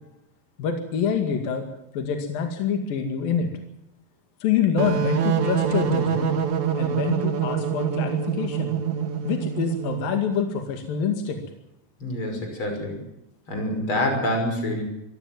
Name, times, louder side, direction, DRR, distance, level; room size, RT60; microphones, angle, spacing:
voice 1, 0.6-1.7 1.9-3.5 4.4-6.3 6.8-8.8 9.2-11.4, left 7 dB, 70° left, 5 dB, 3.9 m, -26 dB
sound 1, 4.8-10.3, right 8 dB, 60° right, 2.8 m, -25 dB
voice 2, 12.0-13.0 13.5-14.8, left 1 dB, 30° left, 4 dB, 6.4 m, -26 dB
24.0 x 15.5 x 7.5 m, 0.84 s
omnidirectional pair, 4.3 m